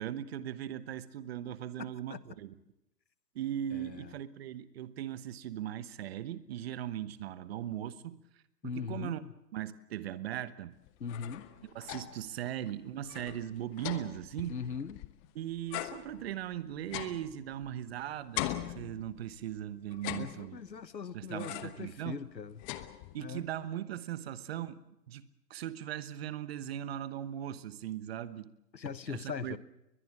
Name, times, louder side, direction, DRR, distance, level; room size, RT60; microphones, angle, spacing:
voice 1, 0.0-2.5 3.3-8.2 8.6-9.2 9.5-10.8 11.7-14.6 15.3-20.6 21.1-22.2 23.1-24.8 25.1-28.5 29.1-29.6, right 11 dB, 40° right, 15 dB, 1.2 m, -39 dB
voice 2, 1.8-2.2 3.7-4.1 8.6-9.3 11.0-11.4 14.5-15.0 20.2-22.6 23.2-23.5 28.7-29.6, left 6 dB, 90° left, 16 dB, 1.3 m, -40 dB
sound 1, 10.9-12.3 12.7-12.8 13.0-15.3 15.7-17.9 18.3-19.4 19.9-20.8 21.4-21.9 22.2-23.4, left 15 dB, 20° left, 1.0 m, -41 dB
21.5 x 21.5 x 7.4 m, 0.87 s
hypercardioid pair, 135°, 49 cm